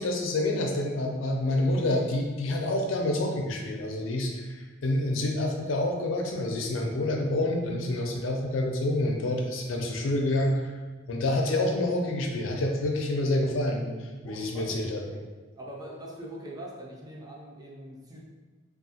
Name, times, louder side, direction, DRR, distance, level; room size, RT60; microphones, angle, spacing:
voice 1, 0.0-10.7 11.1-15.0, left 1 dB, 85° left, 1 dB, 0.5 m, -28 dB
voice 2, 14.2-14.8 15.1-15.2 15.5-18.2, right 1 dB, 20° right, -3 dB, 0.4 m, -42 dB
2.7 x 2.3 x 2.7 m, 1.3 s
head